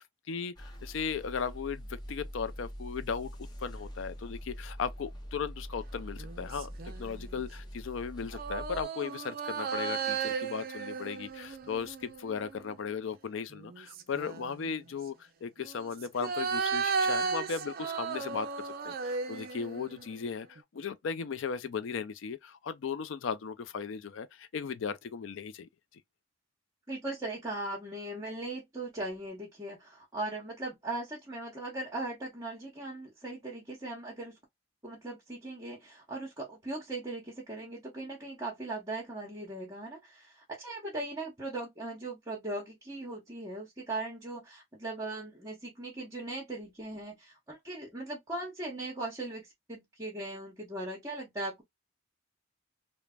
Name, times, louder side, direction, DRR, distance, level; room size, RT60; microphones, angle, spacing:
voice 1, 0.0-6.7 7.0-25.7, left 6 dB, 70° left, 0.4 m, -37 dB
sound 1, 0.6-8.8, equal, 20° left, 0.6 m, -44 dB
sound 2, 6.2-7.4 8.3-12.8 13.5-14.7 15.6-20.2 20.6-20.7, right 5 dB, 45° right, 0.4 m, -35 dB
voice 2, 26.9-34.4 34.8-51.6, right 2 dB, 15° right, 0.8 m, -39 dB
3.2 x 2.1 x 2.3 m
head